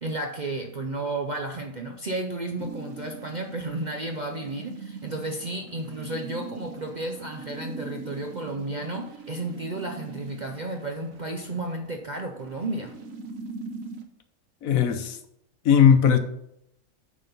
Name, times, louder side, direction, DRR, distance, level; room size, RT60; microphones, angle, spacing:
voice 1, 0.0-12.9, right 2 dB, 45° right, 0.6 m, -33 dB
sound 1, 2.6-14.0, right 3 dB, 65° right, 1.4 m, -41 dB
voice 2, 14.6-15.2 15.6-16.2, left 8 dB, 70° left, 1.1 m, -18 dB
9.2 x 4.2 x 5.5 m
omnidirectional pair, 1.5 m